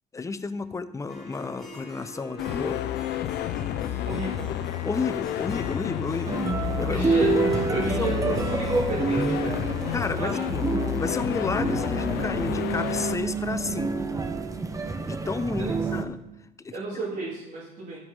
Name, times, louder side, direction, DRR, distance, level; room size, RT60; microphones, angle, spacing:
voice 1, 0.1-2.8 4.8-6.4 6.8-7.5 7.8-8.2 9.9-10.7 11.0-13.9 15.0-16.2 16.6-16.8, left 4 dB, 20° left, 12 dB, 0.5 m, -31 dB
Harp, 1.1-10.2, left 1 dB, ahead, 2.7 m, -45 dB
sound 1, 2.4-13.2, left 12 dB, 80° left, 0.6 m, -30 dB
voice 2, 4.1-4.5 6.8-7.3 7.7-10.4 15.6-15.7 16.7-18.0, right 3 dB, 55° right, -8 dB, 2.6 m, -32 dB
sound 2, 6.3-16.0, right 4 dB, 20° right, 0.7 m, -28 dB
13.0 x 5.0 x 5.4 m, 0.93 s
cardioid pair, 110°, 17 cm